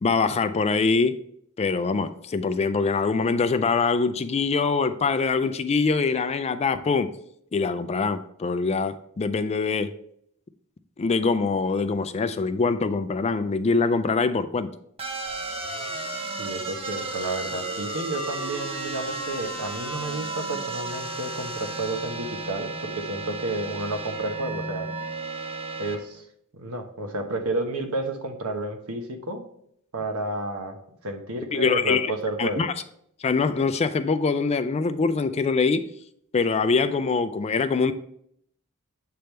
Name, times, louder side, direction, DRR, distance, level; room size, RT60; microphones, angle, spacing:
voice 1, 0.0-1.2 1.6-7.1 7.5-9.9 11.0-14.7 31.5-32.1 32.4-32.7 33.2-35.9 36.3-37.9, left 4 dB, 30° left, 11 dB, 0.4 m, -24 dB
sound 1, 15.0-26.0, right 2 dB, 25° right, 0.9 m, -33 dB
voice 2, 16.4-24.9 25.8-26.2 26.5-29.5 29.9-30.8 31.0-32.7, right 2 dB, 90° right, 5 dB, 1.0 m, -31 dB
7.7 x 3.5 x 4.3 m, 0.69 s
head